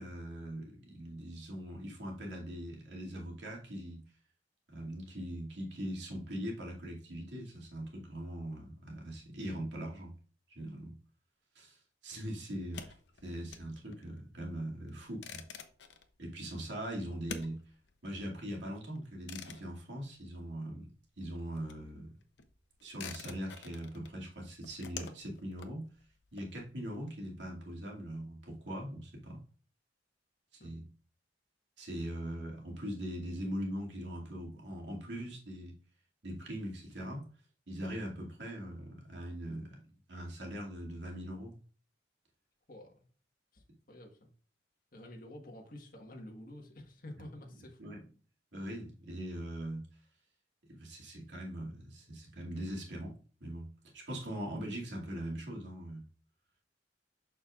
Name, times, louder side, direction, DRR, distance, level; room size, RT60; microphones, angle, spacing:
voice 1, 0.0-4.0 4.7-10.2 10.6-10.9 11.5-11.8 12.0-12.9 13.2-15.4 16.2-17.6 18.0-20.9 21.2-22.1 22.8-25.9 26.3-29.4 30.6-30.8 31.8-35.7 36.2-37.2 37.7-39.8 40.1-41.5 47.8-48.0 48.5-49.9 50.8-53.1 53.4-53.7 53.9-56.1, equal, 80° right, -2 dB, 2.4 m, -41 dB
sound 1, 12.6-20.9 21.2-27.0, left 6 dB, 75° left, 0.7 m, -50 dB
voice 2, 42.7-43.0 43.5-44.3 44.9-47.9, left 1 dB, 50° left, 2 dB, 1.5 m, -50 dB
6.8 x 6.2 x 2.5 m, 0.41 s
head